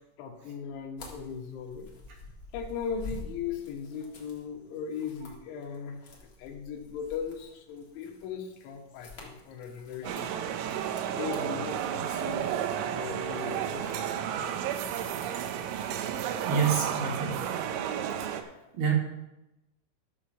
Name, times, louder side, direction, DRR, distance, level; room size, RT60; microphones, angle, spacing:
voice 1, 0.2-1.9 2.5-6.0 6.4-10.4 11.1-14.6 18.6-18.7, left 7 dB, 80° left, 3 dB, 3.5 m, -38 dB
sound 1, 1.0-17.1, left 2 dB, 65° left, 1.2 m, -50 dB
voice 2, 10.0-10.4 15.2-15.3 16.4-17.4 18.2-18.9, right 6 dB, 65° right, 0 dB, 3.1 m, -30 dB
sound 2, 10.0-18.4, right 9 dB, 90° right, 3.1 m, -32 dB
12.5 x 6.5 x 5.0 m, 0.95 s
omnidirectional pair, 5.5 m